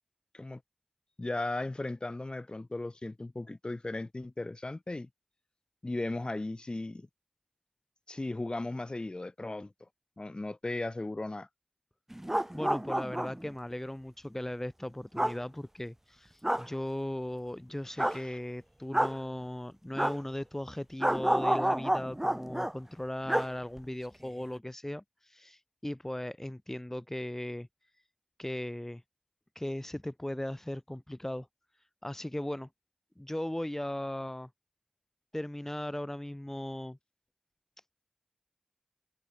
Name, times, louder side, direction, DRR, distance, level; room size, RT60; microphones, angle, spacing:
voice 1, 1.2-5.1 5.8-7.1 8.1-9.7 10.2-11.5 18.0-18.4, left 2 dB, 50° left, 7.1 m, -36 dB
sound 1, 12.1-13.5 15.1-15.3 16.4-16.7 18.0-18.2 18.9-19.1 20.0-20.2 21.0-22.7 23.3-23.5 23.8-23.9, right 1 dB, 15° right, 1.5 m, -29 dB
voice 2, 12.5-27.7 28.4-29.0 29.5-31.5 32.0-32.7 33.2-34.5 35.3-37.0, left 1 dB, 20° left, 4.5 m, -37 dB
wide cardioid pair, 45°, 2 cm